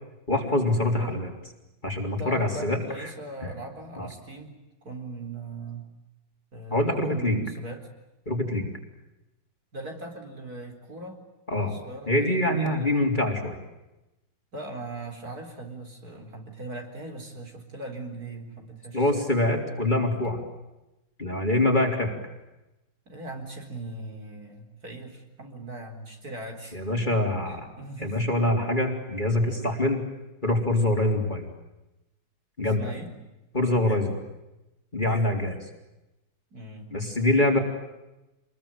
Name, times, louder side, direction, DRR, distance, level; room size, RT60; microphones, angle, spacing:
voice 1, 0.3-1.3 1.8-2.8 4.0-4.1 6.7-7.4 8.3-8.6 11.5-11.7 12.1-13.6 18.9-20.4 21.2-22.1 26.7-27.7 28.0-30.0 30.4-31.5 32.6-32.9 33.5-34.2 34.9-35.6 36.9-37.6, left 1 dB, 25° left, 3 dB, 3.8 m, -24 dB
voice 2, 2.0-4.5 4.8-5.9 6.5-7.9 9.7-11.2 11.6-12.9 14.5-19.3 23.1-26.8 27.1-27.2 27.5-28.2 29.4-29.7 32.6-33.1 36.5-37.0, right 2 dB, 45° right, 3 dB, 4.8 m, -40 dB
27.5 x 22.0 x 8.9 m, 0.98 s
omnidirectional pair, 2.2 m